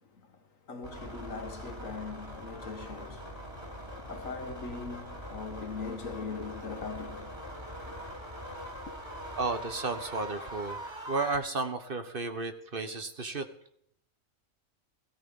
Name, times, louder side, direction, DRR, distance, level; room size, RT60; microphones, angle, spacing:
voice 1, 0.7-3.3 4.0-7.3, left 4 dB, 75° left, 1.8 m, -40 dB
sound 1, 0.8-11.4, equal, 20° right, 3.3 m, -42 dB
voice 2, 9.4-10.8 11.1-13.4, right 3 dB, 45° right, 1.3 m, -33 dB
16.5 x 13.5 x 5.4 m
omnidirectional pair, 1.4 m